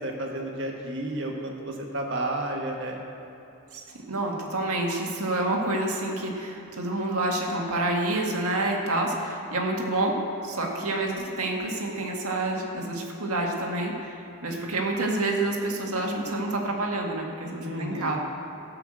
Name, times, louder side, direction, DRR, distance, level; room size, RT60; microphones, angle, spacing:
voice 1, 0.0-3.0 17.6-18.2, right 1 dB, 55° right, 1 dB, 1.7 m, -32 dB
voice 2, 4.1-14.1 14.4-18.2, right 2 dB, 90° right, 0 dB, 1.9 m, -28 dB
17.0 x 5.9 x 7.7 m, 3.0 s
head